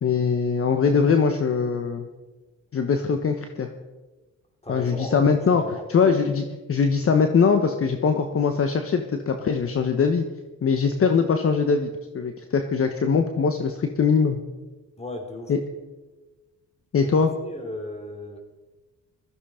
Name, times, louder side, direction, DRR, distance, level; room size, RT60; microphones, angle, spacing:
voice 1, 0.0-2.1 2.7-3.7 4.7-10.2 10.6-11.9 12.1-14.4 15.5-15.6 16.9-17.3, left 5 dB, 45° left, 6 dB, 1.2 m, -22 dB
voice 2, 4.6-5.2 5.5-6.2 15.0-15.5 17.0-17.1 17.4-18.4, left 1 dB, 20° left, 3 dB, 3.7 m, -36 dB
16.5 x 14.5 x 5.1 m, 1.2 s
cardioid pair, 90°, 30 cm